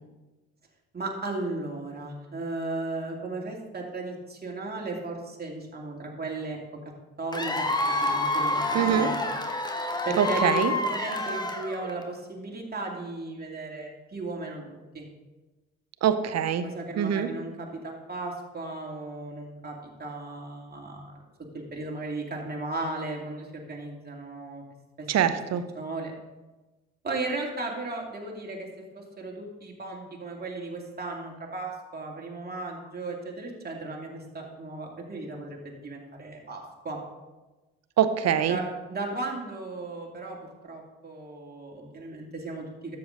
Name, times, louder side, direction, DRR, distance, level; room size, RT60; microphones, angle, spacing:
voice 1, 0.9-6.6 7.2-9.1 10.0-14.6 14.9-15.0 16.6-21.2 21.7-24.6 25.7-26.1 27.0-28.7 28.9-37.0 38.5-38.6 38.9-43.0, right 2 dB, 25° right, -1 dB, 2.5 m, -35 dB
Cheering / Applause / Crowd, 7.3-12.0, left 2 dB, 10° left, 1.2 m, -28 dB
voice 2, 8.7-9.1 10.2-10.7 16.0-16.6 17.0-17.3 25.1-25.6 38.0-38.6, right 9 dB, 45° right, 11 dB, 0.8 m, -24 dB
13.0 x 7.0 x 3.8 m, 1.1 s
figure-of-eight pair, 45°, 36 cm